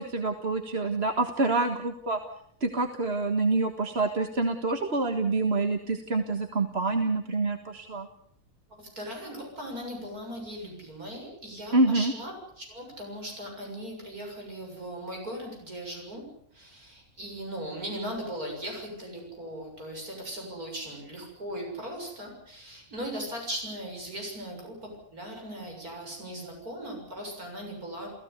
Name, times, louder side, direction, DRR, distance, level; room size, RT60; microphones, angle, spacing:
voice 1, 0.0-2.2 2.6-8.1 11.7-12.1, right 3 dB, 45° right, 6 dB, 1.9 m, -27 dB
voice 2, 8.8-16.2 16.5-28.1, equal, 90° right, 1 dB, 7.5 m, -38 dB
30.0 x 16.5 x 8.3 m, 0.69 s
omnidirectional pair, 1.5 m